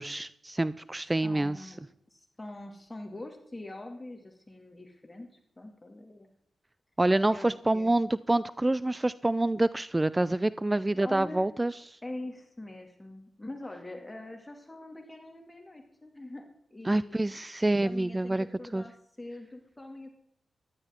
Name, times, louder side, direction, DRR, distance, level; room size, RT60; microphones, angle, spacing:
voice 1, 0.0-1.7 7.0-12.0 16.9-18.5 18.7-18.8, right 2 dB, 20° right, 17 dB, 0.4 m, -27 dB
voice 2, 1.2-6.3 7.3-7.9 11.0-11.5 12.0-17.4 17.8-20.1, left 2 dB, 20° left, 4 dB, 2.2 m, -44 dB
14.5 x 12.0 x 3.6 m, 0.73 s
cardioid pair, 55°, 0 cm